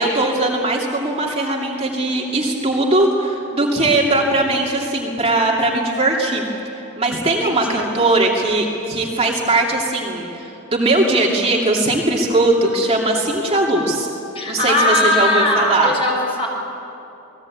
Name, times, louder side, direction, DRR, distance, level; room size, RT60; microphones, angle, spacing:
voice 1, 0.0-6.4 7.0-14.1 14.5-15.9, right 2 dB, 30° right, -2 dB, 2.6 m, -19 dB
voice 2, 7.4-7.8 14.3-16.5, left 1 dB, 25° left, -1 dB, 6.3 m, -19 dB
29.5 x 20.5 x 8.6 m, 2.9 s
head